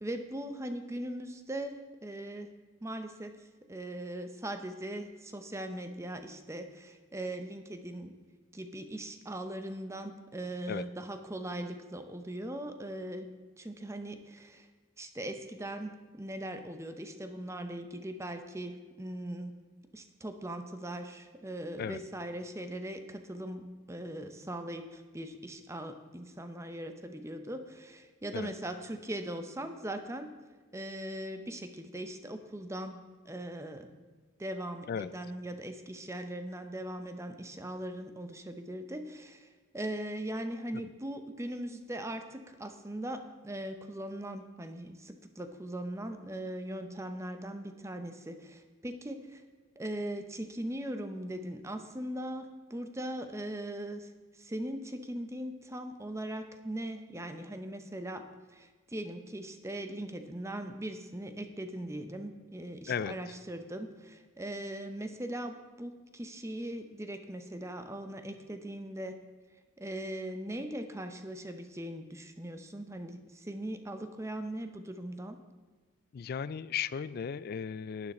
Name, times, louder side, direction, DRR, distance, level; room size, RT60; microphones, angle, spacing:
voice 1, 0.0-2.5 2.8-8.2 8.5-13.3 13.6-14.7 15.0-19.5 19.9-30.3 30.7-33.0 33.2-33.9 34.4-49.4 49.8-58.2 58.5-69.2 69.8-75.4, right 1 dB, 15° right, 8 dB, 0.7 m, -40 dB
voice 2, 76.1-78.1, left 7 dB, 45° left, 18 dB, 0.3 m, -35 dB
12.0 x 9.7 x 4.3 m, 1.4 s
head